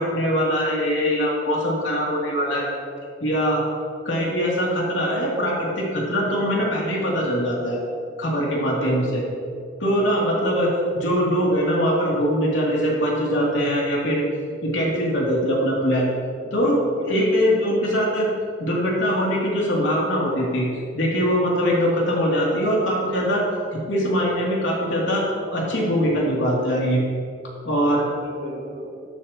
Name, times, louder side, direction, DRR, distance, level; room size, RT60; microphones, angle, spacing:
voice 1, 0.0-2.7 3.2-3.6 4.0-7.8 8.2-9.2 9.8-14.2 14.6-16.1 16.5-16.8 17.1-18.3 18.6-20.7 20.9-23.4 23.9-27.0 27.6-28.0, equal, 90° left, -4 dB, 3.0 m, -22 dB
voice 2, 8.6-9.2 16.4-17.7 27.7-28.9, equal, 65° right, -3 dB, 2.2 m, -34 dB
12.5 x 11.0 x 3.1 m, 2.3 s
head